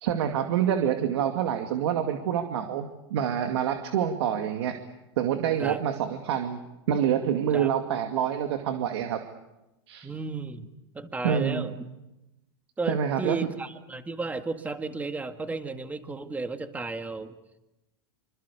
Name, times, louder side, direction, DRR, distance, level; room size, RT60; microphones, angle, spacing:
voice 1, 0.0-4.8 5.2-6.6 6.9-9.2 9.9-10.1 11.2-11.7 12.9-13.4, right 9 dB, 75° right, 5 dB, 2.3 m, -27 dB
voice 2, 10.0-10.7 10.9-11.7 12.8-17.3, right 3 dB, 10° right, 7 dB, 2.0 m, -33 dB
26.0 x 25.5 x 7.0 m, 0.97 s
supercardioid pair, 130°, 14 cm